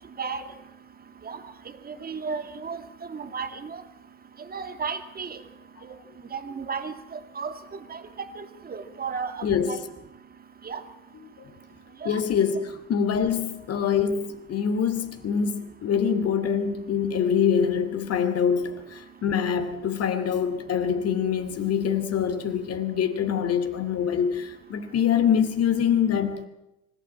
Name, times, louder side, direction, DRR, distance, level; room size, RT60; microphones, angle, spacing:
voice 1, 1.9-2.8 3.1-3.8 4.5-5.4 6.3-7.5 7.9-9.8 10.6-10.8 12.0-12.2, right 5 dB, 20° right, 2.3 m, -34 dB
voice 2, 9.4-9.8 11.2-11.3 12.0-26.5, left 7 dB, 35° left, 2.6 m, -25 dB
25.5 x 14.0 x 8.8 m
hypercardioid pair, 95°, 41 cm